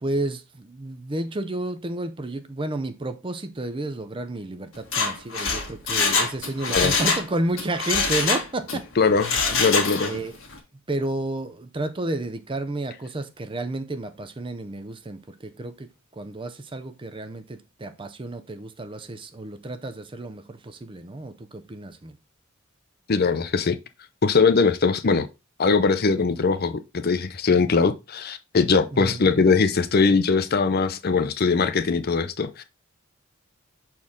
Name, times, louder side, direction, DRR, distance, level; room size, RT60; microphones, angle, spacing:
voice 1, 0.0-8.9 10.1-10.3 10.9-22.2 28.9-29.3, right 2 dB, 25° right, 0.6 m, -31 dB
Mechanisms, 4.8-7.3 7.6-8.8 9.2-10.2 10.5-10.6, left 4 dB, 65° left, 1.9 m, -24 dB
voice 2, 9.0-10.1 23.1-23.8 24.2-25.3 25.6-32.6, left 4 dB, 50° left, 0.5 m, -21 dB
6.3 x 4.4 x 3.6 m
head